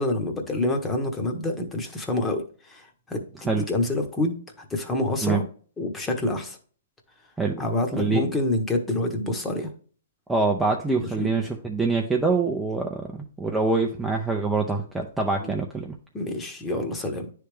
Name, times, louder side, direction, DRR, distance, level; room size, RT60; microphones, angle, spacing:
voice 1, 0.0-5.4 5.8-6.6 7.6-9.7 11.0-11.3 15.4-15.6 16.1-17.3, left 1 dB, 15° left, 4 dB, 1.1 m, -27 dB
voice 2, 7.9-8.3 10.3-13.1 13.4-15.9, right 3 dB, 5° right, 0 dB, 0.6 m, -25 dB
9.7 x 3.4 x 3.3 m, 0.43 s
hypercardioid pair, 130°, 0 cm